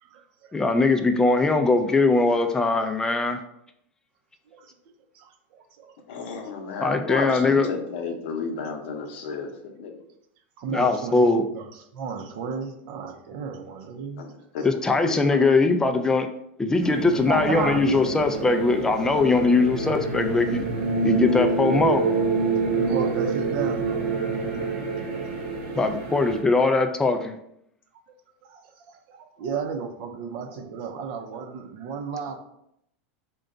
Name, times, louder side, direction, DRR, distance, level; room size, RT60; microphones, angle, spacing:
voice 1, 0.0-0.5 4.5-4.7 5.1-5.9 10.6-11.3 11.5-14.3 17.3-17.8 19.3-19.5 22.6-25.2 28.4-32.4, right 5 dB, 60° right, 5 dB, 0.6 m, -34 dB
voice 2, 0.5-3.4 6.8-7.7 10.7-11.4 14.6-16.3 16.6-20.7 21.0-22.0 25.8-27.3, left 3 dB, 10° left, 6 dB, 0.3 m, -21 dB
voice 3, 6.1-9.9 14.2-15.5, left 5 dB, 70° left, 3 dB, 0.7 m, -33 dB
sound 1, 16.8-26.4, right 3 dB, 80° right, 0.9 m, -27 dB
3.8 x 2.2 x 3.8 m, 0.76 s
supercardioid pair, 125°, 6 cm